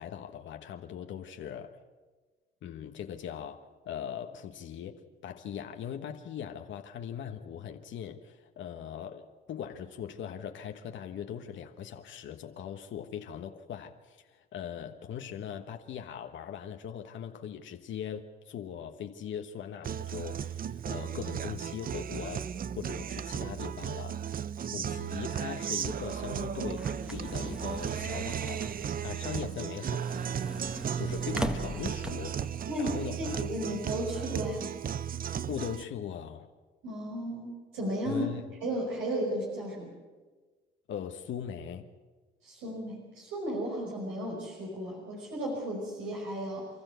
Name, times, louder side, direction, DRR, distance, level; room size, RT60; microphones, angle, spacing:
voice 1, 0.0-1.8 2.6-22.5 22.7-24.2 24.6-30.2 31.0-33.4 35.5-36.5 38.0-38.4 40.9-41.9, left 8 dB, 70° left, 1.3 m, -40 dB
Guitar, 19.8-35.8, right 8 dB, 45° right, 0.6 m, -35 dB
sound 1, 25.9-32.5, equal, 5° right, 1.5 m, -41 dB
voice 2, 32.7-34.7 36.8-38.3 38.6-39.9 42.4-46.7, right 1 dB, 85° right, 5.4 m, -34 dB
29.0 x 13.5 x 8.1 m
cardioid pair, 90°, 20 cm